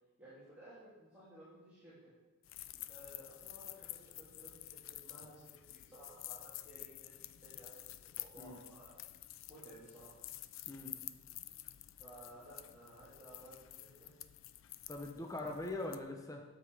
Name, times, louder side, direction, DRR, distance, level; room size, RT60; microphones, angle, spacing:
voice 1, 0.2-2.1 2.9-9.0 9.5-10.1 12.0-14.1 15.4-15.5, right 1 dB, 10° right, -13 dB, 3.0 m, -56 dB
sound 1, 2.4-16.0, left 15 dB, 70° left, 0.4 m, -50 dB
voice 2, 10.7-11.0 14.9-16.4, left 2 dB, 15° left, 2 dB, 0.8 m, -42 dB
9.2 x 7.5 x 4.9 m, 1.2 s
head